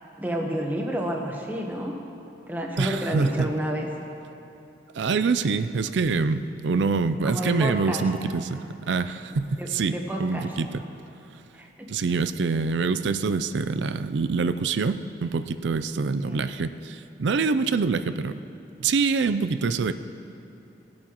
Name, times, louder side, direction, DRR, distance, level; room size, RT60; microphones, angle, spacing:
voice 1, 0.2-1.9 2.5-3.9 7.2-8.0 9.6-10.5 11.5-11.9 16.3-16.4, equal, 10° right, 0 dB, 1.0 m, -30 dB
voice 2, 2.8-3.5 4.9-10.8 11.3-11.4 11.9-18.4 18.8-19.9, right 4 dB, 85° right, 11 dB, 0.4 m, -25 dB
19.5 x 8.6 x 3.0 m, 2.8 s
head